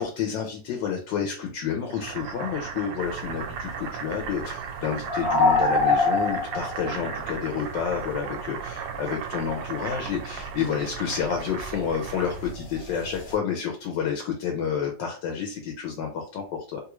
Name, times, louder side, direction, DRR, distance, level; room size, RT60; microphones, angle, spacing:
voice 1, 0.0-16.8, left 7 dB, 80° left, 2 dB, 1.3 m, -30 dB
Boiling, 1.9-12.5, right 7 dB, 85° right, 1.3 m, -36 dB
sound 1, 3.0-9.1 9.4-13.4, left 3 dB, 60° left, 1.1 m, -27 dB
3.1 x 2.4 x 3.0 m, 0.38 s
omnidirectional pair, 2.0 m